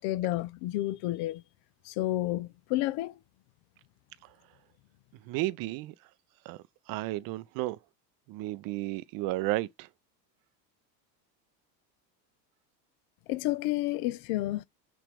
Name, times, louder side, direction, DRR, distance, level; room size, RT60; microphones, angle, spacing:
voice 1, 0.0-1.4 1.8-3.1 13.3-14.6, left 16 dB, 50° left, 0.5 m, -30 dB
voice 2, 5.1-5.9 6.4-7.8 8.3-9.9, right 17 dB, 45° right, 0.5 m, -33 dB
6.1 x 2.5 x 3.3 m
supercardioid pair, 100°, 50 cm